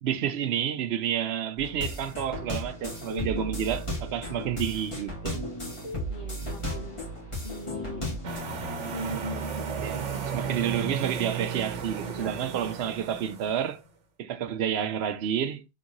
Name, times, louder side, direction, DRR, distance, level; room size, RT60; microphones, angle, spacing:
voice 1, 0.0-5.4 9.8-10.0 10.3-13.8 14.2-15.6, right 9 dB, 65° right, 0.9 m, -30 dB
sound 1, 1.6-8.4, left 1 dB, 25° left, 1.9 m, -35 dB
voice 2, 3.0-3.3 4.2-4.4 6.1-7.0 7.4-8.1 8.9-9.9 11.9-13.0, left 1 dB, 55° left, 1.6 m, -42 dB
sound 2, 8.2-13.8, right 6 dB, 80° right, 1.2 m, -34 dB
3.9 x 3.7 x 2.7 m
omnidirectional pair, 1.2 m